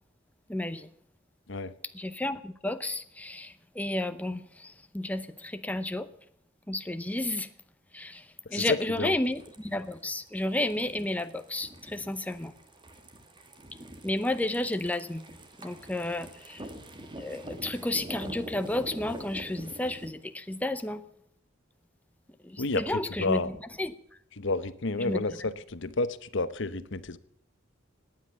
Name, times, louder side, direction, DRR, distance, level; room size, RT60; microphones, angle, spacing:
voice 1, 0.5-0.9 1.9-6.1 6.7-7.5 7.9-12.5 14.0-15.3 15.6-16.7 17.2-21.1 22.4-23.5 23.8-24.2 25.0-25.2, left 1 dB, 10° left, 9 dB, 0.7 m, -32 dB
voice 2, 8.4-9.1 22.6-23.5 24.3-27.2, left 3 dB, 65° left, 14 dB, 0.9 m, -30 dB
sound 1, 9.2-20.1, right 1 dB, 25° right, 1.9 m, -45 dB
18.0 x 9.9 x 7.0 m, 0.71 s
head